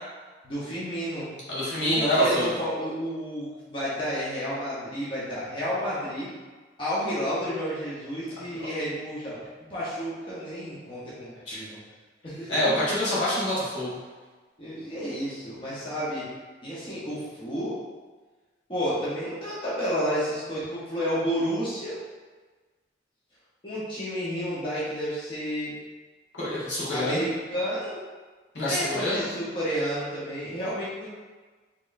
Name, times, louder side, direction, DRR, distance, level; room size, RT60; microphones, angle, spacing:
voice 1, 0.4-1.3 1.8-6.3 6.8-9.4 9.7-11.8 12.2-12.8 14.6-16.3 16.6-17.8 18.7-22.0 23.6-25.7 26.9-28.0 28.6-31.1, equal, 25° left, -9 dB, 0.8 m, -31 dB
voice 2, 1.5-2.5 11.5-11.6 12.5-14.0 26.3-27.2 28.5-29.2, equal, 70° left, -9 dB, 1.4 m, -26 dB
4.5 x 3.1 x 2.5 m, 1.4 s
head